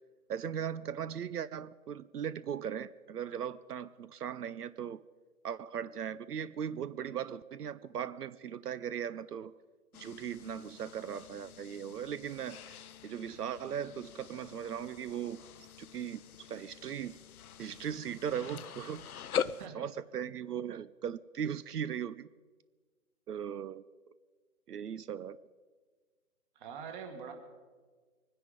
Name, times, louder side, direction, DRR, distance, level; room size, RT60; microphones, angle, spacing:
voice 1, 0.3-5.0 5.4-9.5 9.9-17.1 17.6-19.2 19.7-22.3 23.3-23.8 24.7-25.4, right 8 dB, 80° right, 17 dB, 0.7 m, -38 dB
sound 1, 9.9-19.7, left 8 dB, 70° left, 0.7 m, -43 dB
voice 2, 26.6-27.3, right 6 dB, 30° right, 5 dB, 2.0 m, -44 dB
23.5 x 10.0 x 5.2 m, 1.4 s
hypercardioid pair, 145°, 46 cm